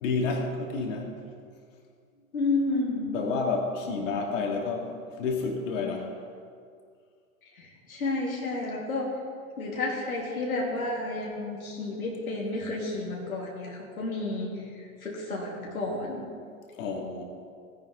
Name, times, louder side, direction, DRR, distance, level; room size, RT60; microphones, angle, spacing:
voice 1, 0.0-1.1 3.1-4.9 5.2-6.1 16.8-17.2, left 4 dB, 65° left, 1 dB, 2.7 m, -29 dB
voice 2, 2.3-3.2 7.5-9.1 9.6-16.2, left 2 dB, 85° left, -3 dB, 2.6 m, -31 dB
17.5 x 10.5 x 3.9 m, 2.2 s
hypercardioid pair, 95°, 42 cm